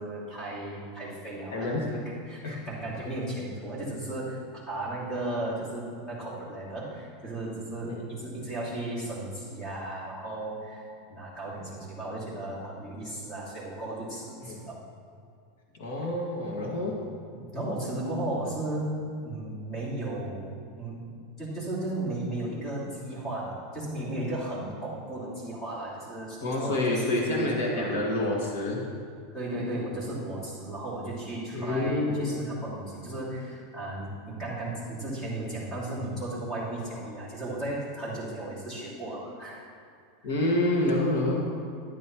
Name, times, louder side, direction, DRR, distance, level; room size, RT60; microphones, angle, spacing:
voice 1, 0.0-1.7 1.9-14.8 17.3-18.9 19.2-27.0 27.3-28.0 29.3-39.7, right 1 dB, 20° left, -6 dB, 2.7 m, -35 dB
voice 2, 1.5-1.9 2.4-2.6 7.8-8.0 14.4-14.6 15.7-17.0 26.4-28.8 31.5-32.3 40.2-41.5, left 1 dB, 80° left, -2 dB, 2.0 m, -28 dB
12.5 x 10.0 x 3.1 m, 2.3 s
supercardioid pair, 170°, 0 cm